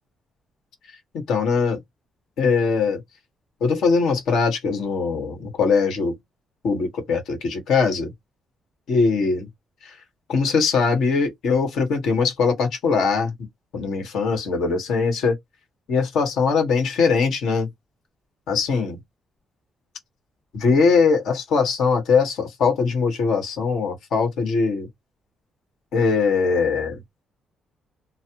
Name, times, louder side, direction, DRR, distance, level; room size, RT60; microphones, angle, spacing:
voice 1, 1.3-1.8 2.4-3.0 3.6-6.1 6.6-8.1 8.9-9.5 9.8-9.9 10.3-13.3 13.7-15.4 15.9-17.7 18.5-19.0 20.5-24.9 25.9-27.0, left 5 dB, 75° left, 1.3 m, -21 dB
3.1 x 2.1 x 2.9 m
cardioid pair, 90°, 0 cm